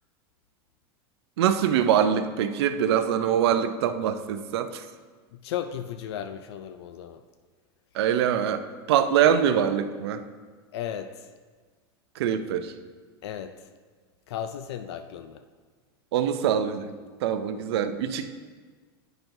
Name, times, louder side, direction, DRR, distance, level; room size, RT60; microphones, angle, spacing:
voice 1, 1.4-4.8 7.9-10.2 12.2-12.7 16.1-16.9 17.2-18.3, right 9 dB, 80° right, 10 dB, 0.5 m, -24 dB
voice 2, 5.3-7.2 10.7-11.3 13.2-13.5 14.3-15.4, left 9 dB, 85° left, 9 dB, 0.4 m, -35 dB
8.9 x 5.9 x 2.7 m, 1.5 s
supercardioid pair, 145°, 13 cm